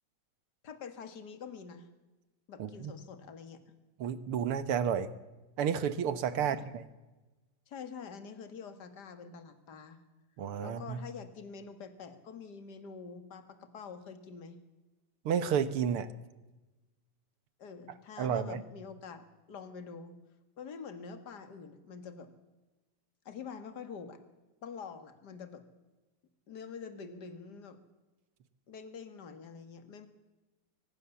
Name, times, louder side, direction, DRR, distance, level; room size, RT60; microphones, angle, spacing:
voice 1, 0.6-1.9 2.5-3.6 6.4-6.6 7.7-10.0 10.6-14.6 17.6-20.2 20.6-22.3 23.3-24.2 24.6-25.7 26.5-27.8 28.7-30.1, left 5 dB, 40° left, 10 dB, 2.1 m, -46 dB
voice 2, 2.6-2.9 4.0-5.1 5.6-6.9 10.4-11.0 15.3-16.1 18.2-18.6, right 8 dB, 60° right, 14 dB, 1.7 m, -31 dB
23.5 x 20.0 x 7.1 m, 1.1 s
omnidirectional pair, 3.3 m